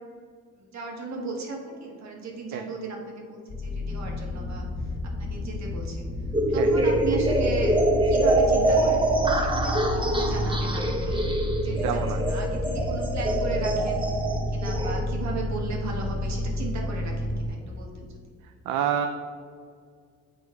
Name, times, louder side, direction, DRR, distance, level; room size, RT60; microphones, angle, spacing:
voice 1, 0.6-6.0 6.5-7.8 8.0-11.2 11.5-14.1 14.5-18.1, right 3 dB, 65° right, 0 dB, 1.5 m, -36 dB
sound 1, 3.5-17.5, left 1 dB, 35° left, 1.5 m, -30 dB
sound 2, 6.3-15.0, right 2 dB, 15° right, 0.9 m, -24 dB
voice 2, 11.8-12.2 18.7-19.1, right 9 dB, 80° right, 6 dB, 0.5 m, -27 dB
8.9 x 3.1 x 4.6 m, 2.1 s
cardioid pair, 90°, 30 cm